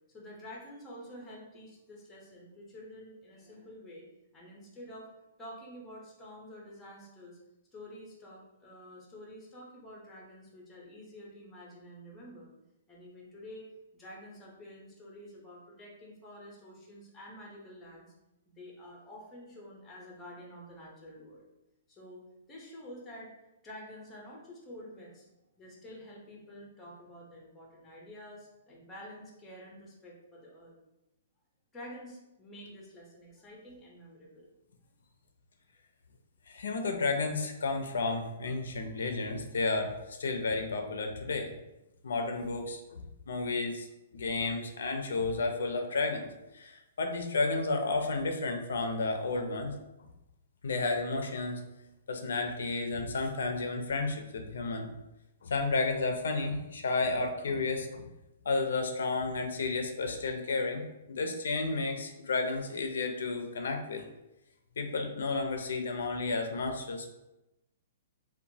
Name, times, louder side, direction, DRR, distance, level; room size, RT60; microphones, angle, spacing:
voice 1, 0.1-4.1 4.3-5.1 5.4-7.4 7.7-12.5 12.9-13.6 13.9-18.1 18.5-21.5 21.9-22.2 22.5-23.3 23.6-25.3 25.6-30.7 31.7-34.5, equal, 10° left, -3 dB, 0.6 m, -49 dB
voice 2, 36.5-41.5 42.0-43.9 44.1-46.3 46.5-49.7 50.6-51.6 52.1-54.9 55.4-58.0 58.4-60.8 61.1-64.0 64.8-67.1, left 3 dB, 85° left, 5 dB, 0.4 m, -32 dB
2.9 x 2.1 x 2.7 m, 0.94 s
hypercardioid pair, 170°, 0 cm